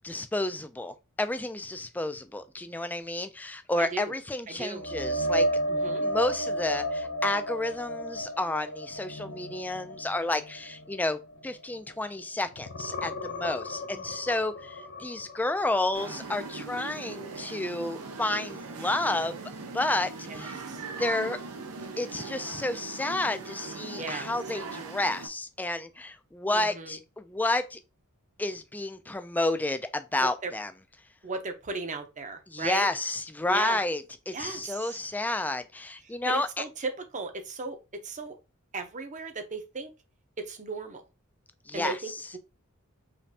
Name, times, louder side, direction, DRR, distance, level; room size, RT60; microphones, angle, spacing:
voice 1, 0.0-5.5 6.0-19.4 19.7-20.6 21.0-21.4 22.0-27.8 28.4-30.7 32.5-36.6 41.7-42.0, left 2 dB, 10° left, 0.3 m, -31 dB
voice 2, 3.8-4.1 4.5-4.9 5.7-6.0 20.2-20.8 24.0-24.3 26.5-27.0 30.2-30.5 31.2-32.9 33.5-33.8 34.3-35.0 36.0-38.3 38.7-39.9 40.4-41.1 41.7-42.4, right 4 dB, 35° right, 0.7 m, -36 dB
sound 1, 4.8-12.2 12.5-16.4 16.8-17.0 20.3-20.4, equal, 60° left, 0.7 m, -33 dB
sound 2, 15.9-25.3, right 4 dB, 90° right, 0.8 m, -40 dB
5.1 x 2.6 x 2.8 m
head